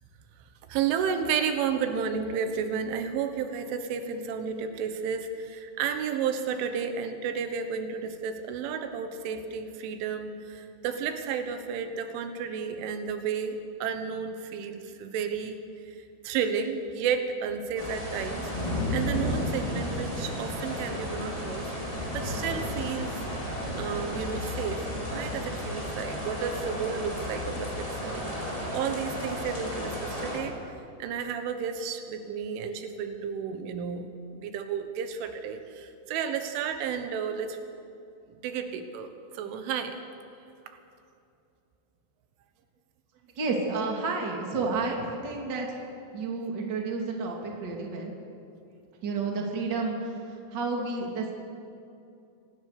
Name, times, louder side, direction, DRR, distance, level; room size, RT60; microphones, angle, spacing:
voice 1, 0.7-16.0 16.2-18.5 18.9-21.7 22.1-23.2 23.7-28.3 28.7-34.1 34.3-37.6 38.3-40.0 40.7-40.8, right 7 dB, 85° right, 8 dB, 3.7 m, -32 dB
sound 1, 17.8-30.4, left 1 dB, 5° left, 4.3 m, -33 dB
voice 2, 43.3-45.8 46.1-48.1 49.0-50.1 50.5-51.3, right 3 dB, 30° right, 0 dB, 2.6 m, -30 dB
25.0 x 19.0 x 6.8 m, 2.6 s
omnidirectional pair, 5.4 m